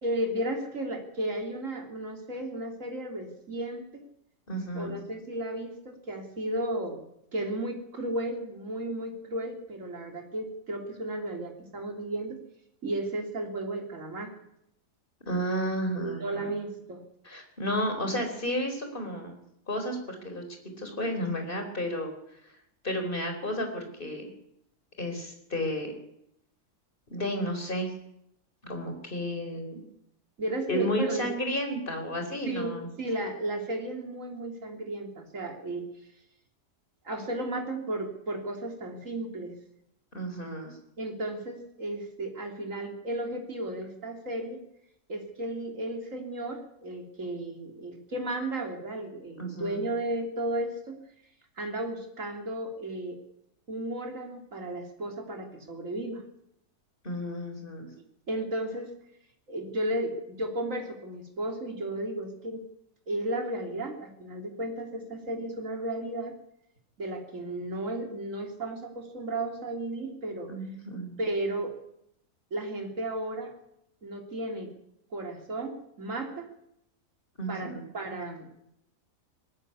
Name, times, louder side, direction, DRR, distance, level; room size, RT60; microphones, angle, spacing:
voice 1, 0.0-4.0 4.7-7.0 7.3-12.4 12.8-14.3 16.0-17.0 30.4-31.3 32.5-35.8 37.0-39.6 41.0-44.6 45.1-51.0 51.6-53.2 53.7-56.2 58.3-58.9 59.5-62.6 63.1-66.3 67.0-70.5 71.2-71.7 72.5-73.5 74.0-74.7 75.1-76.5 77.5-78.6, right 1 dB, 55° right, 3 dB, 3.5 m, -34 dB
voice 2, 4.5-4.9 15.3-16.5 17.2-19.4 19.7-20.4 20.8-22.1 22.8-24.3 25.0-25.9 27.1-27.9 28.6-29.8 30.7-32.9 40.1-40.8 49.4-49.9 57.0-57.9 70.5-71.2 77.4-77.8, equal, 35° left, 5 dB, 4.4 m, -32 dB
19.5 x 14.0 x 9.7 m, 0.78 s
omnidirectional pair, 1.6 m